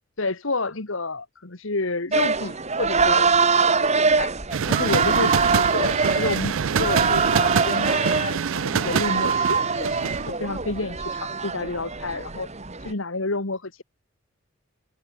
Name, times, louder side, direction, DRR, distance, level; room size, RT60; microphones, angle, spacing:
voice 1, 0.2-4.3 4.7-9.9 10.3-12.5 12.8-13.8, left 3 dB, 65° left, 1.8 m, -30 dB
sound 1, 2.1-12.9, right 4 dB, 35° right, 2.4 m, -23 dB
sound 2, 4.5-10.3, right 7 dB, 70° right, 0.5 m, -26 dB
open air
head